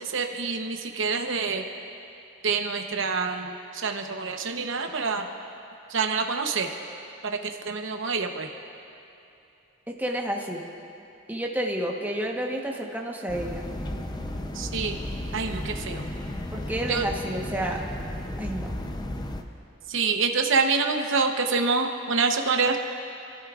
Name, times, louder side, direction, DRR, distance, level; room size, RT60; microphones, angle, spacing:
voice 1, 0.0-1.6 2.4-5.2 5.9-6.7 7.3-8.5 14.5-15.0 15.3-16.0 16.9-17.1 19.9-22.8, right 4 dB, 65° right, 4 dB, 0.9 m, -26 dB
voice 2, 9.9-10.6 11.3-13.6 16.5-17.8 18.4-18.7, right 1 dB, 10° right, 0 dB, 1.1 m, -30 dB
sound 1, 13.3-19.4, left 1 dB, 20° left, 0.6 m, -34 dB
28.5 x 12.5 x 2.5 m, 2.8 s
head